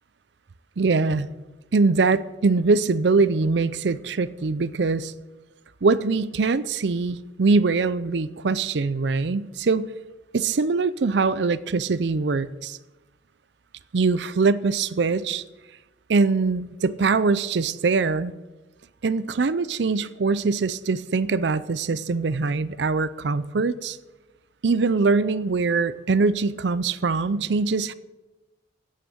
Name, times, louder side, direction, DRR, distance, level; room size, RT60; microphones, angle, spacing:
voice 1, 0.8-1.3 1.7-5.1 5.8-9.9 10.3-12.8 13.9-15.4 16.1-18.3 19.0-24.0 24.6-27.9, right 4 dB, 75° right, 16 dB, 0.5 m, -22 dB
15.5 x 6.5 x 8.6 m, 1.1 s
head